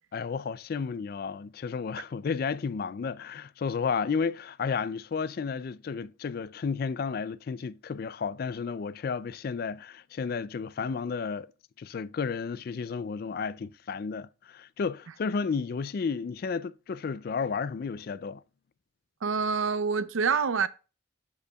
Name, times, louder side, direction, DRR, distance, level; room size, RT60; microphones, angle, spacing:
voice 1, 0.1-11.5 11.8-18.4, left 5 dB, 45° left, 0.3 m, -32 dB
voice 2, 19.2-20.7, right 5 dB, 75° right, 0.5 m, -26 dB
13.0 x 5.4 x 2.3 m
head